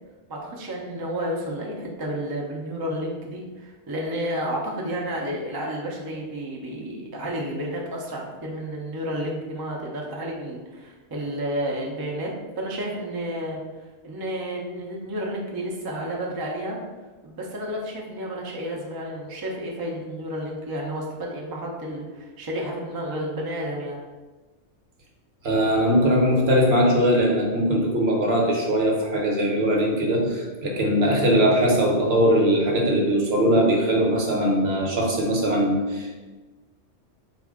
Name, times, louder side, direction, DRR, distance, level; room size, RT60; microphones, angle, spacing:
voice 1, 0.3-12.3 12.6-13.6 14.0-16.8 17.2-24.0, equal, 30° right, -2 dB, 0.4 m, -31 dB
voice 2, 25.4-36.2, equal, 60° right, -1 dB, 1.0 m, -21 dB
4.2 x 2.4 x 3.5 m, 1.2 s
omnidirectional pair, 1.2 m